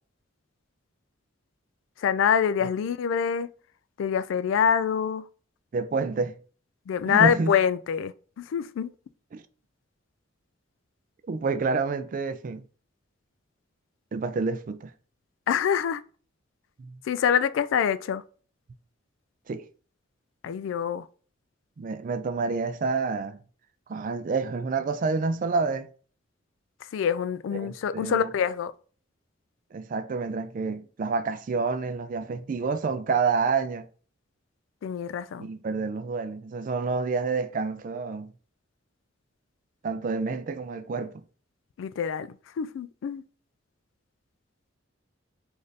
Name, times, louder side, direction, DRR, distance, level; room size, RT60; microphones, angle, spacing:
voice 1, 2.0-3.5 4.0-5.2 6.9-8.9 15.5-16.0 17.1-18.2 20.4-21.0 26.9-28.7 34.8-35.5 41.8-42.3 42.6-43.2, left 7 dB, 80° left, 0.3 m, -25 dB
voice 2, 5.7-6.4 7.1-7.5 9.3-9.4 11.3-12.6 14.1-14.9 16.8-17.0 19.5-19.6 21.8-23.4 23.9-25.9 27.5-28.3 29.7-33.9 35.4-38.3 39.8-41.2, right 4 dB, 45° right, 0.3 m, -28 dB
3.3 x 2.5 x 3.9 m
head